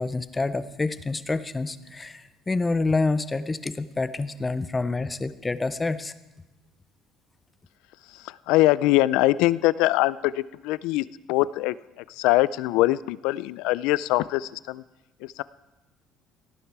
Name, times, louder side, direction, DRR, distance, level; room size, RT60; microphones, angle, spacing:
voice 1, 0.0-6.1, left 3 dB, 10° left, 13 dB, 0.5 m, -27 dB
voice 2, 8.0-14.8 15.2-15.4, left 17 dB, 80° left, 19 dB, 0.4 m, -23 dB
17.5 x 11.0 x 4.7 m, 1.0 s
cardioid pair, 175°, 0 cm